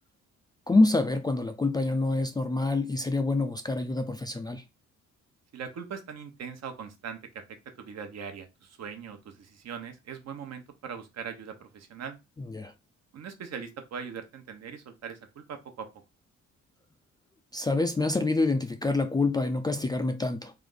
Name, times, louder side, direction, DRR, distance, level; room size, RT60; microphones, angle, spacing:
voice 1, 0.7-4.6 12.4-12.7 17.5-20.5, left 2 dB, 15° left, 0.4 m, -26 dB
voice 2, 5.5-7.2 7.8-12.2 13.1-15.9, right 6 dB, 60° right, 0.9 m, -40 dB
3.4 x 2.5 x 3.8 m
cardioid pair, 90°, 30 cm